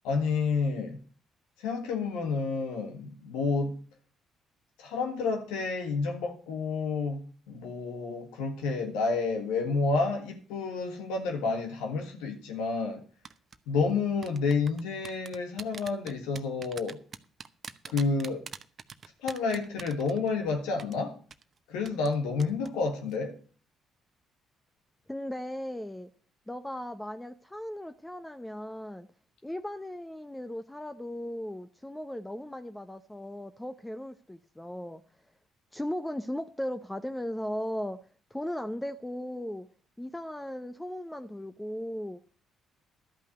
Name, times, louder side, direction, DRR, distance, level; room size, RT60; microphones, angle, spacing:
voice 1, 0.0-1.0 1.6-3.7 4.8-13.0 13.7-17.0 17.9-18.4 19.2-21.2 21.7-23.3, left 4 dB, 85° left, 1.6 m, -30 dB
sound 1, 13.2-13.6 14.2-20.5 20.8-20.9 21.3-21.4 21.8-22.1 22.4-22.7 23.0-23.2, right 6 dB, 45° right, 0.8 m, -43 dB
voice 2, 25.1-26.1 26.5-29.1 29.4-35.0 35.7-38.0 38.3-39.7 40.0-42.2, left 1 dB, 10° left, 0.8 m, -37 dB
12.0 x 5.5 x 8.1 m
hypercardioid pair, 55°, 0 cm